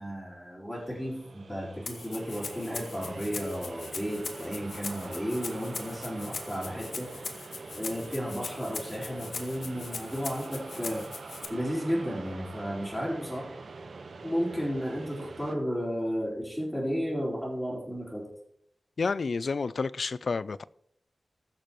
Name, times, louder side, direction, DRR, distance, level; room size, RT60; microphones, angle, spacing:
voice 1, 0.0-7.1 7.7-11.1 11.5-13.5 14.2-18.2, equal, 5° left, 4.2 m, -33 dB
sound 1, 0.7-15.6, right 3 dB, 75° right, 1.0 m, -45 dB
Rattle (instrument), 1.9-11.5, left 4 dB, 85° left, 1.1 m, -40 dB
voice 2, 19.0-20.6, left 4 dB, 65° left, 0.4 m, -30 dB
20.0 x 6.7 x 3.1 m
wide cardioid pair, 100°, 0 cm